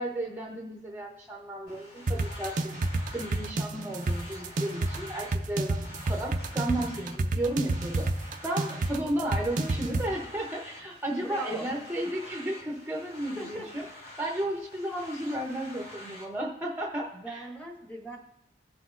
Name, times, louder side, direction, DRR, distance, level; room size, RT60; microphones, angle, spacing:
voice 1, 0.0-2.7 3.1-13.8 14.2-17.4, right 1 dB, 10° right, -1 dB, 0.7 m, -33 dB
sound 1, 1.7-16.3, left 1 dB, 65° left, 2.0 m, -47 dB
sound 2, 2.1-10.1, right 2 dB, 45° right, 0.4 m, -29 dB
voice 2, 11.1-11.7 13.4-13.7 17.1-18.2, right 1 dB, 10° left, 1 dB, 1.2 m, -39 dB
16.5 x 5.9 x 2.4 m, 0.92 s
head